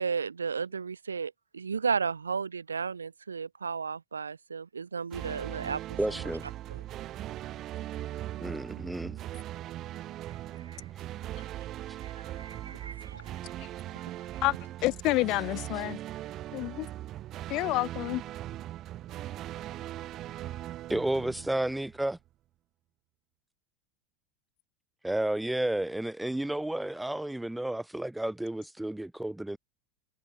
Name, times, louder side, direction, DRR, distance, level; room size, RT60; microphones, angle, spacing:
voice 1, 0.0-5.8 6.7-6.8 10.7-10.8 12.0-13.3 13.9-14.0, right 5 dB, 85° right, 1.1 m, -34 dB
sound 1, 5.1-22.2, right 13 dB, 40° right, 5.7 m, -40 dB
voice 2, 6.0-6.5 8.4-9.2 20.9-22.2 25.0-29.6, right 1 dB, 5° right, 1.4 m, -31 dB
voice 3, 14.8-16.0 16.5-16.9 17.5-18.2, left 20 dB, 50° left, 2.8 m, -28 dB
figure-of-eight pair, 80°, 0 cm